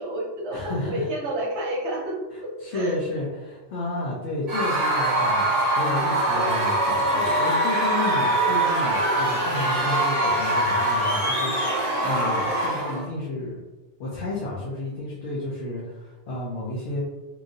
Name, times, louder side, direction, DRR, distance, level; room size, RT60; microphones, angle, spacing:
voice 1, 0.0-3.0, right 1 dB, 70° right, -1 dB, 0.9 m, -30 dB
voice 2, 0.5-1.1 2.3-13.6 14.0-17.0, left 2 dB, 70° left, -5 dB, 0.9 m, -32 dB
Screaming / Cheering / Crowd, 4.5-13.0, right 1 dB, 30° right, 1.5 m, -23 dB
2.9 x 2.6 x 2.5 m, 1.1 s
omnidirectional pair, 1.3 m